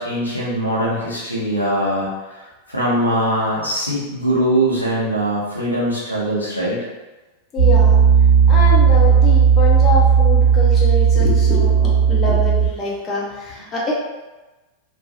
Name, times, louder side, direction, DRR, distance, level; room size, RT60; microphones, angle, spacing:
voice 1, 0.0-6.8, right 1 dB, 90° left, -6 dB, 0.8 m, -21 dB
voice 2, 7.5-8.0 8.5-13.9, left 3 dB, 25° left, -4 dB, 0.7 m, -24 dB
Piano, 7.6-12.7, right 7 dB, 60° right, 1.3 m, -14 dB
3.0 x 2.3 x 2.6 m, 1.1 s
figure-of-eight pair, 90°, 0 cm